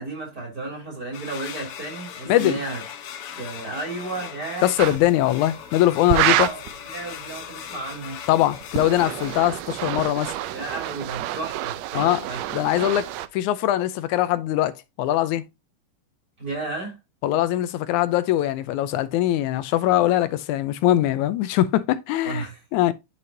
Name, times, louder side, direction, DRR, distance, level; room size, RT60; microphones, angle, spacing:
voice 1, 0.0-2.8 3.4-4.7 6.1-6.6 6.9-8.2 10.5-12.4 16.4-17.0 22.2-22.6, right 2 dB, 30° right, 3.1 m, -33 dB
sound 1, 1.1-9.4, left 9 dB, 65° left, 1.5 m, -39 dB
voice 2, 2.3-2.6 4.6-6.5 8.3-10.4 11.9-12.2 12.5-13.1 13.3-15.5 17.2-22.5 22.7-22.9, left 14 dB, 85° left, 2.1 m, -22 dB
sound 2, 4.8-5.0 6.1-6.7 8.5-13.3, right 13 dB, 75° right, 1.7 m, -27 dB
11.0 x 4.2 x 2.6 m
omnidirectional pair, 3.4 m